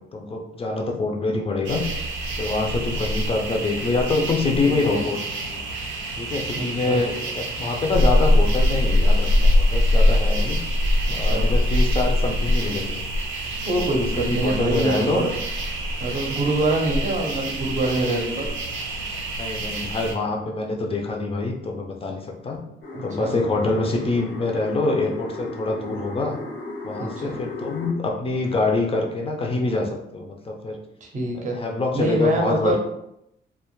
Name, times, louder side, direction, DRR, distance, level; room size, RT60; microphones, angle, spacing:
voice 1, 0.0-1.8 2.4-5.6 6.2-10.6 11.1-13.0 13.9-15.3 19.4-22.6 23.0-26.4 26.8-30.8 31.3-32.8, left 3 dB, 30° left, 2 dB, 0.4 m, -25 dB
sound 1, 1.6-20.1, left 1 dB, 80° right, 0.5 m, -23 dB
voice 2, 4.6-5.0 6.5-7.0 11.1-11.5 13.6-15.3 16.0-18.5 22.5-22.6 22.9-23.4 27.0-27.4 31.0-31.6 31.9-32.8, right 2 dB, 40° right, 1 dB, 0.6 m, -25 dB
sound 2, 22.8-27.9, left 2 dB, 70° left, 0.6 m, -36 dB
2.2 x 2.0 x 3.0 m, 0.81 s
cardioid pair, 90°, 20 cm